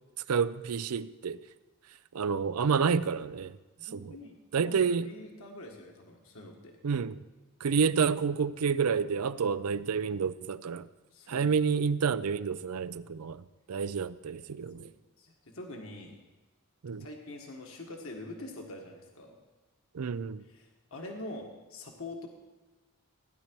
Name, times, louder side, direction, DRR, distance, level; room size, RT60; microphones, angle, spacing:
voice 1, 0.3-1.4 2.1-3.6 4.0-4.1 4.5-5.1 6.8-7.2 7.6-10.9 11.3-13.4 13.7-14.9 16.8-17.1 19.9-20.4, right 6 dB, 85° right, 14 dB, 0.5 m, -29 dB
voice 2, 3.8-6.8 11.1-11.5 14.2-14.4 14.8-16.2 17.0-19.3 20.4-22.3, left 2 dB, 65° left, 2 dB, 1.5 m, -45 dB
16.5 x 10.5 x 4.6 m, 1.2 s
head